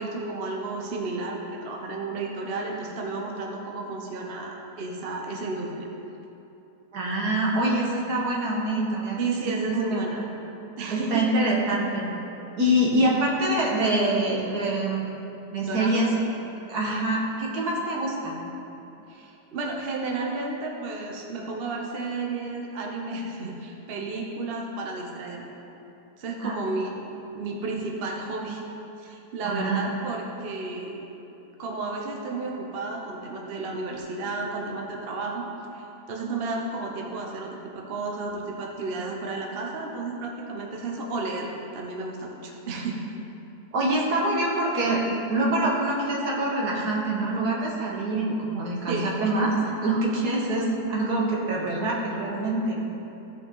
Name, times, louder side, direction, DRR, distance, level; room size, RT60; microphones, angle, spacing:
voice 1, 0.0-5.9 9.2-10.3 10.8-11.3 15.6-16.0 19.1-25.4 26.2-28.6 29.0-31.0 31.6-35.4 35.7-43.0 48.9-49.1, right 3 dB, 45° right, -1 dB, 1.0 m, -32 dB
voice 2, 6.9-9.2 9.5-9.6 9.9-10.1 10.9-12.1 12.6-15.0 15.5-16.1 16.7-18.4 26.4-26.5 29.4-29.8 43.7-45.0 45.3-52.8, right 1 dB, 75° right, -3 dB, 2.0 m, -25 dB
15.5 x 5.3 x 3.9 m, 3.0 s
omnidirectional pair, 1.7 m